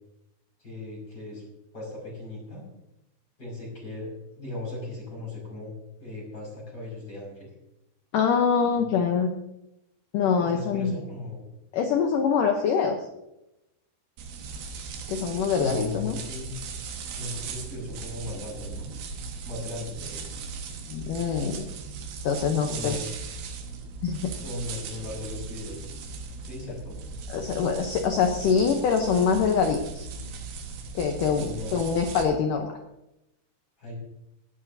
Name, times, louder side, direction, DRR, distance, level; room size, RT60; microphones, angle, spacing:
voice 1, 0.6-1.4 1.7-2.6 3.4-4.1 4.4-5.7 6.0-7.5 10.4-11.4 15.6-16.5 17.2-18.9 19.4-20.3 22.6-23.0 24.4-26.0 26.4-27.0 31.4-31.8 33.8-33.9, left 2 dB, 25° left, -4 dB, 5.9 m, -37 dB
voice 2, 8.1-9.3 10.1-10.9 11.7-13.0 15.1-16.2 20.9-21.7 22.2-23.0 24.0-24.3 27.3-30.1 31.0-32.7, left 6 dB, 85° left, 4 dB, 1.8 m, -24 dB
sound 1, 14.2-32.2, right 5 dB, 90° right, 3.9 m, -38 dB
18.0 x 12.5 x 2.7 m, 0.90 s
omnidirectional pair, 5.0 m